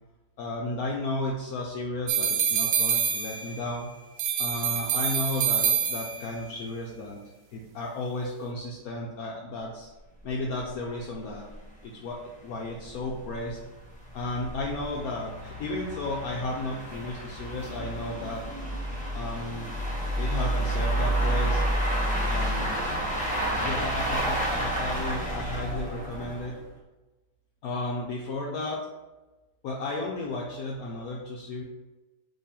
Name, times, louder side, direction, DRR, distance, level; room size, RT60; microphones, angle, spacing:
voice 1, 0.4-3.9 4.4-7.2 7.5-9.9 10.2-11.5 11.8-13.6 14.1-18.4 19.1-19.7 20.2-21.6 22.2-22.9 23.5-26.5 27.6-28.8 29.6-31.6, left 2 dB, 70° left, -1 dB, 1.0 m, -33 dB
sound 1, 2.1-3.7 4.2-6.4, right 8 dB, 80° right, 1.3 m, -26 dB
sound 2, 10.2-10.3 10.6-10.7 11.1-11.2 11.5-11.6 12.2-26.6, right 1 dB, 5° left, 0.7 m, -30 dB
3.8 x 3.2 x 4.2 m, 1.1 s
omnidirectional pair, 1.8 m